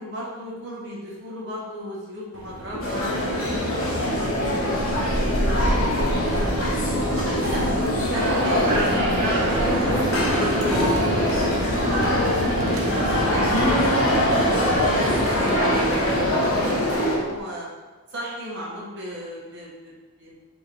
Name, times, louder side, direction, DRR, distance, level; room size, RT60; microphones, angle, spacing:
voice 1, 0.0-5.8 6.2-6.8 7.2-12.9 13.3-13.8 14.3-17.7 18.1-19.9 20.2-20.4, equal, 55° right, -6 dB, 1.1 m, -35 dB
sound 1, 2.3-17.3, equal, 75° right, 0.7 m, -28 dB
sound 2, 2.8-17.2, left 1 dB, 75° left, 0.8 m, -24 dB
sound 3, 8.1-16.7, right 1 dB, 20° right, 1.1 m, -28 dB
5.0 x 3.1 x 2.5 m, 1.3 s
head